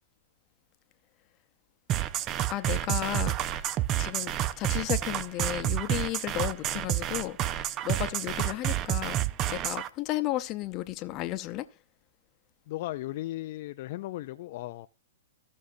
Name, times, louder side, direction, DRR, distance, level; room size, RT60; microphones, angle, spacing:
sound 1, 1.9-9.9, right 12 dB, 30° right, 0.5 m, -29 dB
voice 1, 2.5-9.2 9.5-11.6, left 15 dB, 35° left, 0.7 m, -34 dB
voice 2, 12.7-14.9, left 16 dB, 50° left, 0.4 m, -36 dB
15.0 x 6.3 x 2.7 m
hypercardioid pair, 135°, 0 cm